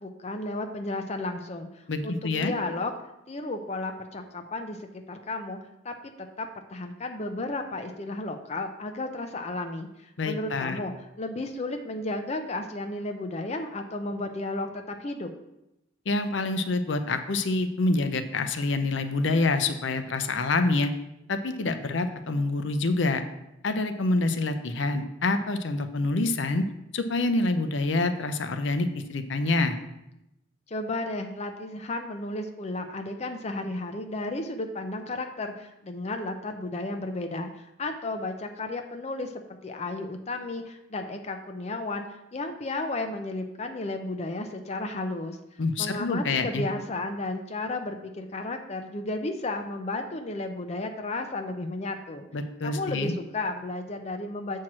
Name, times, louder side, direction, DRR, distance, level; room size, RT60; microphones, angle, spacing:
voice 1, 0.0-2.9 3.3-5.6 5.8-15.3 30.7-39.3 39.6-42.0 42.3-45.4 45.8-52.3 52.6-54.6, left 2 dB, 35° left, 5 dB, 0.5 m, -33 dB
voice 2, 1.9-2.5 10.2-10.8 16.1-20.9 21.3-23.2 23.6-26.6 26.9-29.8 45.6-46.6 52.3-53.1, left 2 dB, 75° left, 9 dB, 0.6 m, -26 dB
7.4 x 4.6 x 5.9 m, 0.88 s
head